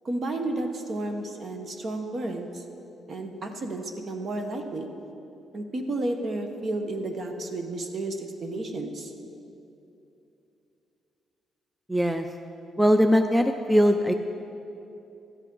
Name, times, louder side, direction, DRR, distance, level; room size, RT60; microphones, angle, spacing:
voice 1, 0.0-2.6 3.1-4.9 5.5-9.1, right 2 dB, 45° right, 5 dB, 1.2 m, -32 dB
voice 2, 11.9-12.3 12.8-14.1, equal, 5° right, 7 dB, 0.5 m, -20 dB
13.0 x 8.3 x 5.5 m, 2.8 s
cardioid pair, 90°, 0 cm